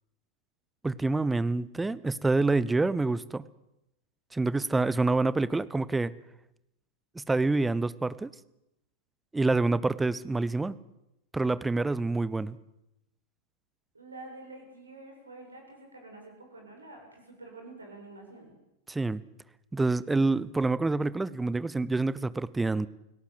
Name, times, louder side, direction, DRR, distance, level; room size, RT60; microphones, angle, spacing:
voice 1, 0.8-3.5 4.3-6.1 7.1-8.3 9.3-10.7 11.3-12.6 18.9-19.2 19.7-22.9, right 3 dB, 10° right, 18 dB, 0.9 m, -27 dB
voice 2, 13.9-18.5, right 2 dB, 80° right, 2 dB, 7.8 m, -47 dB
29.5 x 17.5 x 7.9 m, 0.87 s
figure-of-eight pair, 90°, 0 cm